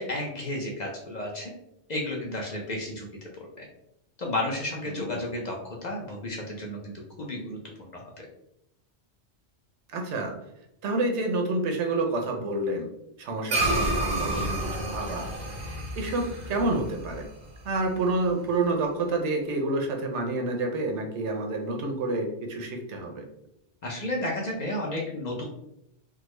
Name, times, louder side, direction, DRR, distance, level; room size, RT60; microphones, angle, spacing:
voice 1, 0.0-1.5 1.9-3.6 4.2-5.6 5.8-6.9 7.2-7.6 7.9-8.3 23.8-25.4, left 1 dB, 45° left, -2 dB, 0.6 m, -32 dB
voice 2, 9.9-10.3 10.8-12.9 13.2-15.3 15.6-17.3 17.6-23.2, right 2 dB, 80° right, 3 dB, 1.0 m, -29 dB
sound 1, 13.5-18.1, right 1 dB, 45° right, 0.7 m, -30 dB
3.6 x 2.0 x 3.1 m, 0.81 s
omnidirectional pair, 1.2 m